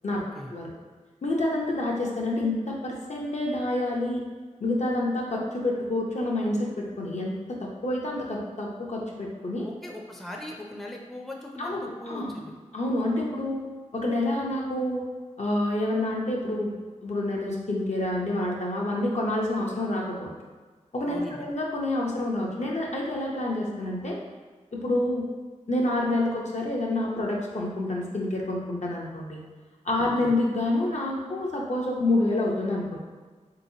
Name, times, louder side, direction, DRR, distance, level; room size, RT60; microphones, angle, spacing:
voice 1, 0.1-0.5 9.6-12.5 21.1-21.5 30.0-30.3, left 1 dB, ahead, -1 dB, 0.4 m, -40 dB
voice 2, 1.2-4.2 4.6-9.7 11.6-12.3 12.7-13.6 13.9-15.0 15.4-16.7 17.0-20.3 20.9-24.2 24.7-25.3 25.7-29.4 29.8-33.0, left 1 dB, 60° left, -2 dB, 0.6 m, -28 dB
3.5 x 2.9 x 2.7 m, 1.4 s
wide cardioid pair, 55°, 13 cm